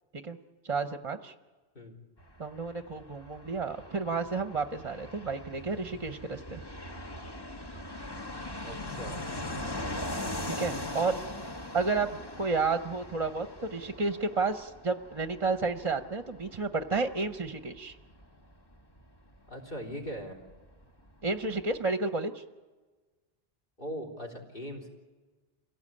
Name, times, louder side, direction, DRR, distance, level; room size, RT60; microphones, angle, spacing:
voice 1, 0.6-1.3 2.4-6.6 10.5-11.2 11.7-18.0 21.2-22.4, right 4 dB, 35° right, 8 dB, 0.8 m, -31 dB
Fixed-wing aircraft airplane, 2.2-20.6 20.8-20.9 21.1-21.8, left 1 dB, 25° left, 1.4 m, -41 dB
voice 2, 8.6-9.3 19.5-20.4 23.8-24.9, equal, 55° left, 4 dB, 3.8 m, -40 dB
27.0 x 17.5 x 8.6 m, 1.3 s
omnidirectional pair, 1.1 m